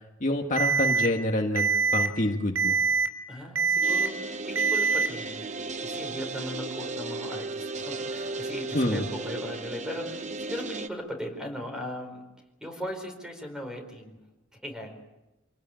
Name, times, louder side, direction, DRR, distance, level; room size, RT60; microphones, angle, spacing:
voice 1, 0.2-2.8 8.7-9.0, left 1 dB, 40° left, 2 dB, 1.8 m, -27 dB
Alarm, 0.6-1.1 1.6-2.1 2.6-3.1 3.6-4.1 4.6-5.1, right 5 dB, 85° right, 3.4 m, -24 dB
voice 2, 3.3-12.2 12.6-14.2 14.6-15.0, equal, 5° right, 4 dB, 4.6 m, -38 dB
sound 1, 3.8-10.9, right 3 dB, 35° right, 1.0 m, -35 dB
27.0 x 19.0 x 9.1 m, 1.0 s
head